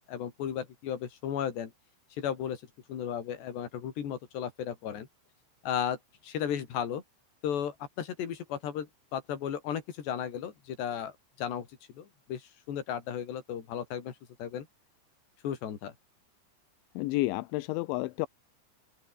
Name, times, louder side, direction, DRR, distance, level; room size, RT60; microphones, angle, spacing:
voice 1, 0.0-1.7 2.2-2.6 2.9-5.1 5.6-6.0 6.2-7.0 7.4-11.7 11.9-14.7 15.4-15.9, left 9 dB, 60° left, 5.1 m, -35 dB
voice 2, 17.0-18.3, left 20 dB, 80° left, 3.1 m, -30 dB
omnidirectional pair, 5.6 m